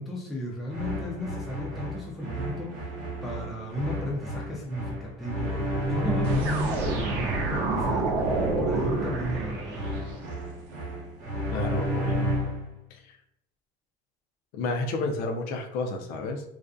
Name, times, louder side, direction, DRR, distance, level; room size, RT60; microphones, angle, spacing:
voice 1, 0.0-9.9, equal, ahead, -4 dB, 0.4 m, -34 dB
sound 1, 0.7-12.7, equal, 50° right, 0.8 m, -32 dB
sound 2, 6.2-10.2, right 3 dB, 80° right, 0.6 m, -28 dB
voice 2, 11.5-12.3 12.9-13.0 14.5-16.4, left 3 dB, 65° left, 4 dB, 0.5 m, -31 dB
2.4 x 2.1 x 2.5 m, 0.78 s
cardioid pair, 130°, 17 cm